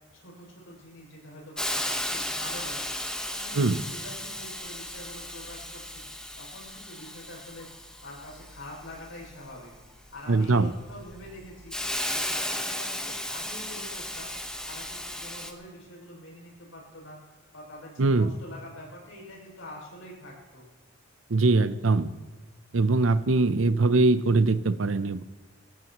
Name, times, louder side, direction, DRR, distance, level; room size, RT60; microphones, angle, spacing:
voice 1, 0.1-11.7 12.1-14.3 14.6-17.2 17.5-20.7, left 1 dB, 80° left, -2 dB, 6.4 m, -45 dB
Hiss, 1.6-15.5, left 1 dB, 5° left, 1.2 m, -35 dB
voice 2, 10.3-10.7 18.0-18.3 21.3-22.1 22.7-25.2, right 3 dB, 90° right, 13 dB, 0.7 m, -22 dB
22.5 x 17.0 x 3.1 m, 1.2 s
head